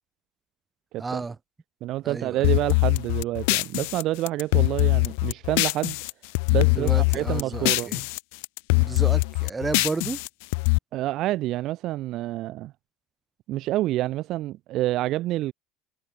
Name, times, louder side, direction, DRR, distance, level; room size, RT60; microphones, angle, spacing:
voice 1, 1.0-1.4 2.0-2.5 6.8-8.0 8.8-10.2, right 4 dB, 10° right, 1.8 m, -32 dB
voice 2, 1.8-6.0 6.5-7.9 10.9-12.7 13.5-15.5, right 16 dB, 45° right, 0.4 m, -28 dB
sound 1, 2.4-6.1 6.3-8.2 8.4-10.8, left 31 dB, 80° left, 1.0 m, -23 dB
cardioid pair, 165°, 0 cm